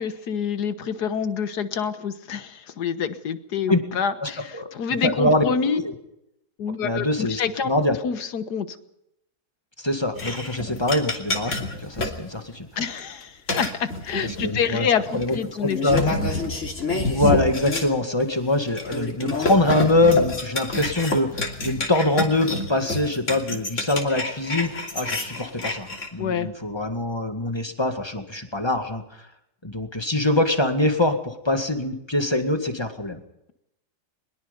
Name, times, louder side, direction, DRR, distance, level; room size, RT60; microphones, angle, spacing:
voice 1, 0.0-5.8 6.6-7.7 8.0-8.8 12.8-16.0 26.2-26.5, left 6 dB, 80° left, 11 dB, 1.8 m, -27 dB
voice 2, 4.2-4.7 5.0-5.9 6.8-8.0 9.8-12.8 14.2-14.9 15.1-15.4 15.6-16.2 16.9-29.3 29.6-33.2, left 1 dB, 15° left, 6 dB, 2.0 m, -24 dB
sound 1, 10.2-12.2 12.9-13.2 13.5-14.7 15.2-15.4 15.7-17.9 18.2-18.3 18.6-26.1, left 2 dB, 50° left, 3.2 m, -28 dB
22.5 x 21.5 x 5.4 m, 0.83 s
omnidirectional pair, 1.7 m